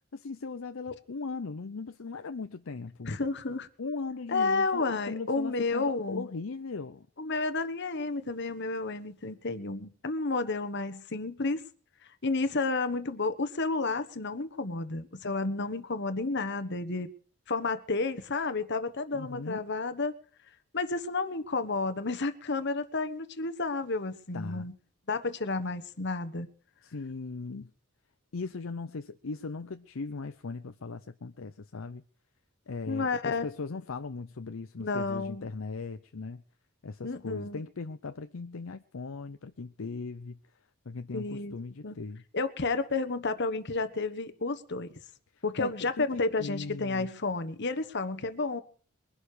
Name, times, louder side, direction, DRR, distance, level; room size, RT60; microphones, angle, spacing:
voice 1, 0.1-3.2 3.8-7.1 19.1-19.6 24.3-24.7 26.8-27.7 28.3-32.0 32.7-36.4 36.8-40.4 40.9-42.2 45.6-47.1, left 4 dB, 75° left, 0.7 m, -38 dB
voice 2, 3.0-3.7 4.3-6.2 7.2-11.6 12.2-17.1 17.5-20.1 20.7-24.7 25.1-26.5 32.9-33.5 34.8-35.5 37.0-37.6 41.1-41.5 41.8-41.9 42.3-44.9 45.4-48.6, left 3 dB, 55° left, 1.3 m, -31 dB
22.0 x 11.5 x 5.0 m
head